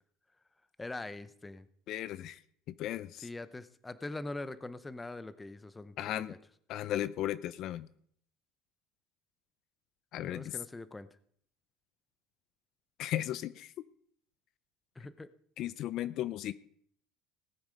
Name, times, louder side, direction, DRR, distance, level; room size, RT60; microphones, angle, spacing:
voice 1, 0.8-1.7 3.2-6.4 10.3-11.1 15.0-15.3, left 2 dB, 10° left, 14 dB, 0.8 m, -42 dB
voice 2, 1.9-2.4 2.8-3.3 6.0-6.3 6.7-7.9 10.1-10.6 13.0-13.7 15.6-16.5, left 13 dB, 55° left, 16 dB, 0.6 m, -35 dB
18.5 x 7.9 x 5.2 m, 0.63 s
supercardioid pair, 125°, 0 cm